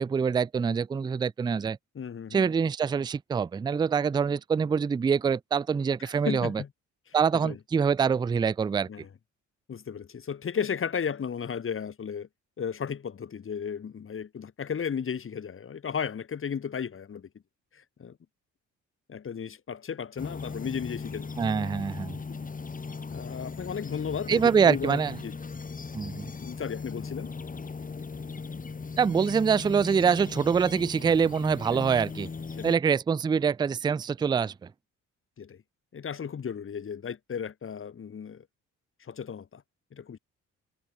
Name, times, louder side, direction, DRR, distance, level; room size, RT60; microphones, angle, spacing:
voice 1, 0.0-1.8 2.3-6.6 7.1-8.9 21.4-22.2 24.3-25.2 25.9-26.3 29.0-32.3 32.6-34.5, right 6 dB, 15° right, 0.3 m, -25 dB
voice 2, 1.9-2.5 6.0-6.7 7.1-7.6 8.9-9.1 9.7-12.3 12.6-17.3 17.7-18.2 19.1-21.3 22.3-22.5 23.1-25.3 26.2-27.3 31.7-31.9 32.5-32.7 35.4-35.6 35.9-38.5 39.0-39.6 39.9-40.2, left 7 dB, 45° left, 2.6 m, -35 dB
sound 1, 20.2-32.7, left 4 dB, 25° left, 2.3 m, -38 dB
cardioid pair, 90°, 30 cm